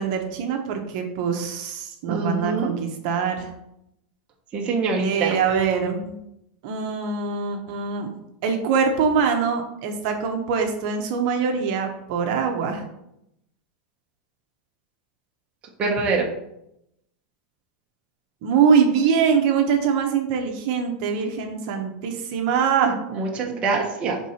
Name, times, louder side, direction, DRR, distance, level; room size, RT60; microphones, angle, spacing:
voice 1, 0.0-3.5 5.0-6.2 6.6-8.1 8.4-12.8 18.4-23.0, right 6 dB, 50° right, 4 dB, 0.9 m, -23 dB
voice 2, 2.1-2.8 4.5-5.4 15.8-16.3 23.1-24.2, right 3 dB, 25° right, 0 dB, 0.9 m, -24 dB
5.9 x 3.8 x 4.3 m, 0.81 s
supercardioid pair, 155°, 5 cm